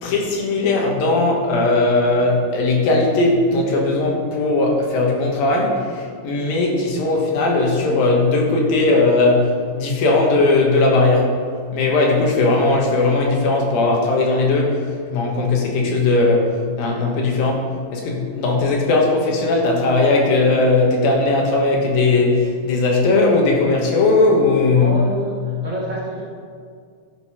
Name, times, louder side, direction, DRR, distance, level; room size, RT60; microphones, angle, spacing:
voice 1, 0.0-11.4 11.7-14.8 15.1-16.5 16.8-25.0, left 2 dB, 85° left, 0 dB, 3.2 m, -18 dB
voice 2, 24.7-26.2, right 1 dB, 45° right, -6 dB, 1.8 m, -28 dB
11.5 x 6.4 x 4.9 m, 2.1 s
omnidirectional pair, 4.0 m